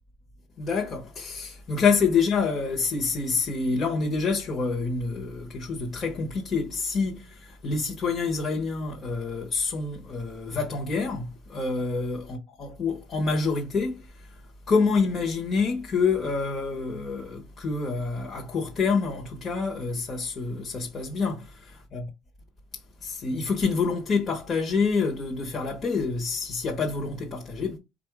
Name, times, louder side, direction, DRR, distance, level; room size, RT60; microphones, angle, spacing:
voice 1, 0.6-14.4 14.7-21.6 21.9-22.0 23.0-27.8, left 4 dB, 40° left, 1.1 m, -27 dB
4.3 x 2.6 x 4.7 m
cardioid pair, 110°, 0 cm